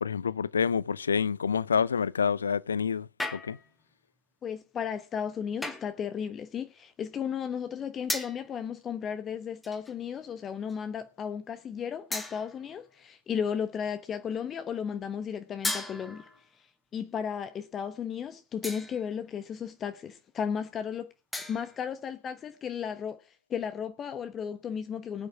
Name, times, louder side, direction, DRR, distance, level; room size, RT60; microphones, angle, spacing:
voice 1, 0.0-3.6, left 6 dB, 70° left, 0.6 m, -28 dB
sound 1, 3.2-3.8 5.6-6.0 8.1-8.5 9.6-10.0 10.7-10.8 12.1-12.7 15.6-16.5 18.6-19.1 21.3-21.9, left 1 dB, 5° left, 2.3 m, -36 dB
voice 2, 4.4-16.3 16.9-21.1 21.5-25.3, left 7 dB, 25° left, 1.1 m, -34 dB
18.5 x 9.4 x 4.9 m
figure-of-eight pair, 90°, 0 cm